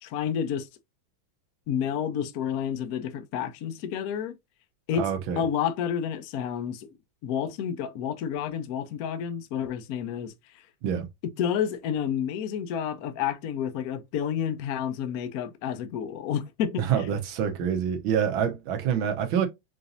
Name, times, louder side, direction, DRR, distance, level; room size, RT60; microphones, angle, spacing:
voice 1, 0.0-0.7 1.7-4.3 4.9-5.1 5.4-6.9 7.2-10.6 11.2-17.1, left 8 dB, 75° left, 0.8 m, -30 dB
voice 2, 4.9-5.4 10.8-11.1 16.8-19.5, right 8 dB, 75° right, 1.6 m, -26 dB
5.0 x 2.6 x 2.5 m
omnidirectional pair, 2.3 m